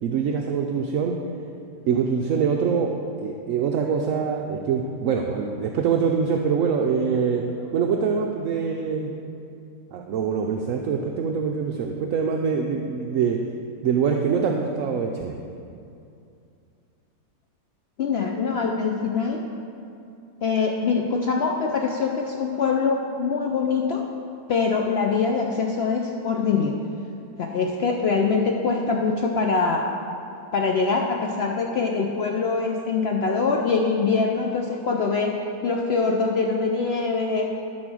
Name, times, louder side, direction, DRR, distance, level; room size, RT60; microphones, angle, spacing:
voice 1, 0.0-1.2 1.9-2.9 3.2-7.4 7.7-9.1 9.9-13.4 13.8-15.3, right 6 dB, 70° right, 2 dB, 0.8 m, -24 dB
voice 2, 18.0-19.4 20.4-24.0 24.5-26.8 27.4-29.8 30.5-35.3 35.6-37.5, left 4 dB, 80° left, 0 dB, 0.5 m, -23 dB
12.0 x 4.1 x 6.2 m, 2.5 s
omnidirectional pair, 1.8 m